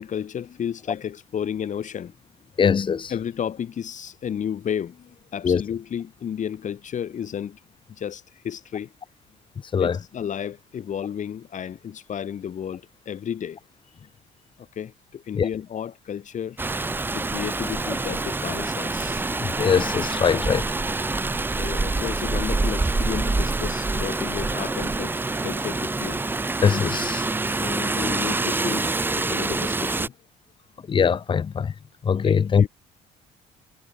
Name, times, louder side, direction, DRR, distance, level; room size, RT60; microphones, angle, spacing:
voice 1, 0.0-2.1 3.1-7.6 7.9-8.9 9.8-13.6 14.0-14.1 14.6-16.6 17.1-19.3 21.5-25.1 25.4-26.2 27.5-28.9 29.2-30.1 32.2-32.7, left 8 dB, 45° left, 3.7 m, -32 dB
voice 2, 2.6-3.1 5.4-5.6 9.7-10.0 15.4-15.5 19.6-20.7 26.6-27.2 30.9-31.7 32.0-32.7, left 6 dB, 30° left, 0.7 m, -21 dB
Rain, 16.6-30.1, right 3 dB, 10° right, 0.7 m, -26 dB
cardioid pair, 110°, 17 cm